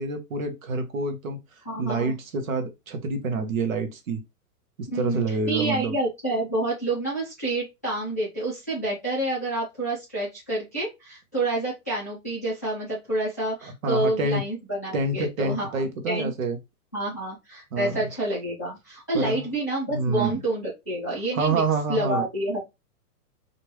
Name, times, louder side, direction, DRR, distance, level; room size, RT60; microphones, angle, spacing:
voice 1, 0.0-1.4 1.8-4.2 4.8-6.0 13.6-14.4 14.9-16.6 17.7-18.1 19.1-19.5 19.9-20.4 21.3-22.2, right 3 dB, 60° right, 0.9 m, -27 dB
voice 2, 1.6-2.1 4.9-16.3 16.9-21.6 21.9-22.6, right 2 dB, 10° left, 0.5 m, -28 dB
3.1 x 2.6 x 3.0 m
hypercardioid pair, 175°, 47 cm